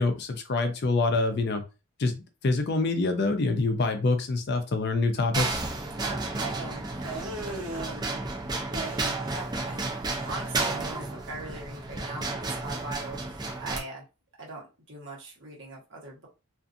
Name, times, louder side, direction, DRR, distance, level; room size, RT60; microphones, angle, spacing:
voice 1, 0.0-1.6 2.0-2.1 2.4-5.6, left 3 dB, 50° left, 7 dB, 0.4 m, -26 dB
sound 1, 5.3-13.8, right 3 dB, 20° right, 0.4 m, -32 dB
voice 2, 6.0-7.3 7.7-8.1 9.2-14.0 14.4-16.3, right 2 dB, 55° right, -3 dB, 1.1 m, -41 dB
sound 2, 7.0-8.0 8.7-9.5 9.7-10.5, right 2 dB, 70° right, 0.6 m, -38 dB
2.5 x 2.5 x 2.5 m, 0.30 s
head